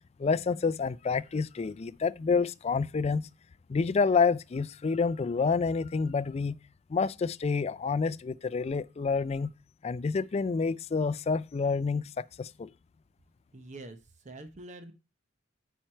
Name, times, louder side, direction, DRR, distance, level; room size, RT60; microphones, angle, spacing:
voice 1, 0.2-3.3 3.7-6.6 6.9-9.5 9.8-12.7, left 5 dB, 35° left, 0.3 m, -28 dB
voice 2, 13.5-14.9, right 2 dB, 40° right, 0.8 m, -45 dB
9.2 x 4.5 x 4.4 m
head